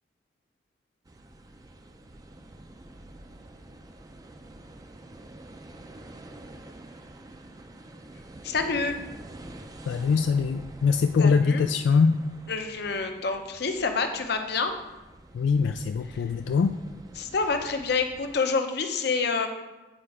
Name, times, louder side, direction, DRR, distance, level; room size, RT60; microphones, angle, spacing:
sound 1, 1.1-18.4, right 1 dB, 20° right, 0.4 m, -47 dB
voice 1, 8.4-8.9 11.2-11.6 12.5-14.7 16.1-16.2 17.2-19.5, left 4 dB, 65° left, 6 dB, 0.7 m, -27 dB
voice 2, 9.9-12.2 15.3-16.8, left 5 dB, 90° left, 7 dB, 0.3 m, -23 dB
8.8 x 4.3 x 4.8 m, 1.1 s
head